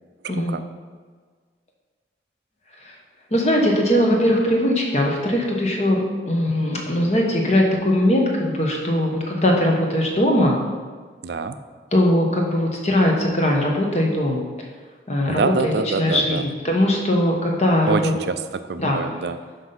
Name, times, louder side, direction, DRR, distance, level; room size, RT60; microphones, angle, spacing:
voice 1, 0.2-0.6 11.2-11.6 15.3-16.4 17.9-19.4, right 4 dB, 65° right, 10 dB, 0.4 m, -26 dB
voice 2, 3.3-10.6 11.9-14.4 15.1-18.1 18.8-19.0, left 1 dB, 35° left, 0 dB, 1.2 m, -20 dB
5.9 x 5.4 x 5.8 m, 1.5 s
head